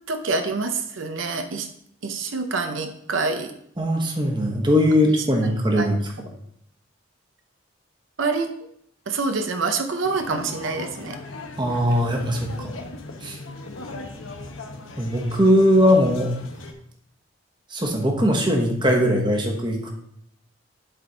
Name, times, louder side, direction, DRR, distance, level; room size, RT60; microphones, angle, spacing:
voice 1, 0.1-1.7 2.0-3.5 5.8-5.9 8.2-8.5 9.1-11.2, right 4 dB, 75° right, 6 dB, 0.7 m, -26 dB
voice 2, 3.8-6.1 11.6-12.7 13.2-13.4 15.0-16.3 17.7-19.9, equal, 25° right, 1 dB, 1.1 m, -20 dB
sound 1, 10.0-16.7, left 2 dB, 85° left, 1.0 m, -38 dB
11.0 x 4.3 x 3.9 m, 0.69 s
head